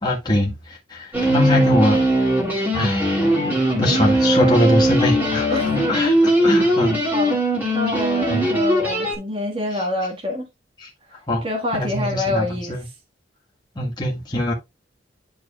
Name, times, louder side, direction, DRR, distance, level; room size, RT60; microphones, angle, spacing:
voice 1, 0.0-2.0 2.7-3.2 3.8-7.0 8.3-8.4 10.8-10.9 11.3-11.4 11.8-12.8 13.8-14.5, left 1 dB, 25° left, 1.7 m, -22 dB
sound 1, 1.1-9.2, right 1 dB, 10° right, 2.3 m, -20 dB
voice 2, 5.5-6.3 7.1-7.4 7.7-10.5 11.4-12.8, left 2 dB, 30° right, 1.4 m, -26 dB
10.5 x 4.7 x 2.3 m
head